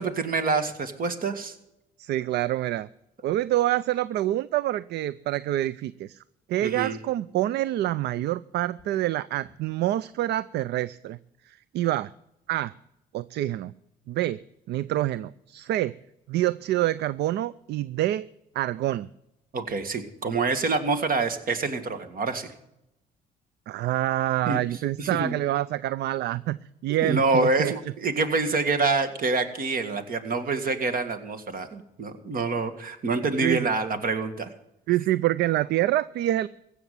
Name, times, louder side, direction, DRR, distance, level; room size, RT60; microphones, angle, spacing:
voice 1, 0.0-1.6 6.6-7.0 19.5-22.5 24.5-24.6 25.0-25.3 26.9-34.5, right 3 dB, 50° right, 9 dB, 2.0 m, -26 dB
voice 2, 2.0-2.9 3.2-6.2 6.5-11.2 11.5-12.1 12.5-12.7 13.1-13.7 14.1-14.4 14.7-15.9 16.3-18.3 18.5-19.1 23.7-26.6 26.8-27.7 33.4-33.7 34.9-36.5, right 14 dB, 70° right, 19 dB, 0.4 m, -26 dB
16.0 x 7.1 x 9.3 m, 0.85 s
supercardioid pair, 70°, 18 cm